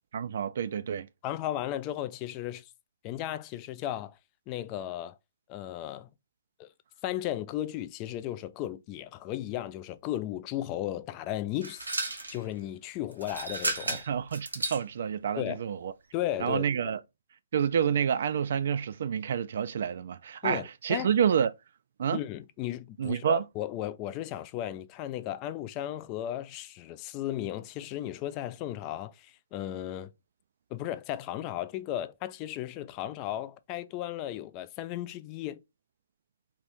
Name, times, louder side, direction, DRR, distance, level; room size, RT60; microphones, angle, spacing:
voice 1, 0.1-1.1 13.9-15.9 16.4-17.0 17.5-21.5 22.0-22.2 23.0-23.4, right 8 dB, 60° right, 0.3 m, -28 dB
voice 2, 1.2-2.7 3.0-4.2 4.5-5.2 5.5-6.1 6.6-6.7 7.0-14.0 15.4-15.6 16.1-16.7 20.4-21.1 22.1-30.1 30.7-35.6, left 13 dB, 30° left, 0.3 m, -35 dB
sound 1, 11.6-12.4 13.1-14.8, right 2 dB, 90° right, 0.8 m, -33 dB
2.8 x 2.5 x 3.4 m
hypercardioid pair, 130°, 0 cm